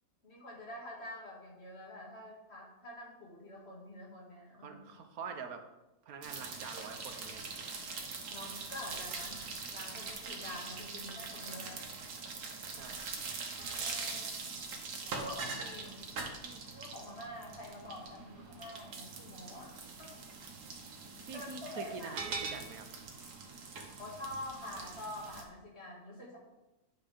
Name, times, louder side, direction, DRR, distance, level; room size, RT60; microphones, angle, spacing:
voice 1, 0.2-5.0 8.3-9.4 9.7-11.9 13.7-14.5 15.0-20.1 21.3-22.2 24.0-26.4, left 1 dB, 40° left, -4 dB, 2.4 m, -47 dB
voice 2, 4.6-5.6 6.1-7.5 12.8-13.0 21.3-22.9, right 5 dB, 70° right, 6 dB, 1.3 m, -45 dB
sound 1, 6.2-25.4, right 4 dB, 85° right, 1.6 m, -43 dB
9.2 x 4.4 x 5.2 m, 0.99 s
omnidirectional pair, 1.7 m